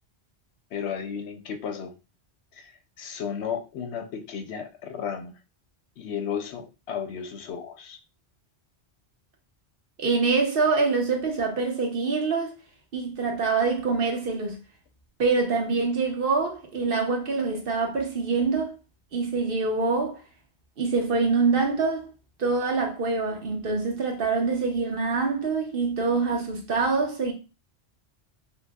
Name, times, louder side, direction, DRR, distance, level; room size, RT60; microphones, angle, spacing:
voice 1, 0.7-1.9 2.6-2.7 3.0-5.3 6.0-8.0, left 7 dB, 90° left, 0.9 m, -33 dB
voice 2, 10.0-12.5 12.9-14.6 15.2-18.7 19.1-20.2 20.8-22.1 22.4-27.3, right 4 dB, 60° right, 1.0 m, -25 dB
5.5 x 2.1 x 2.2 m
omnidirectional pair, 1.1 m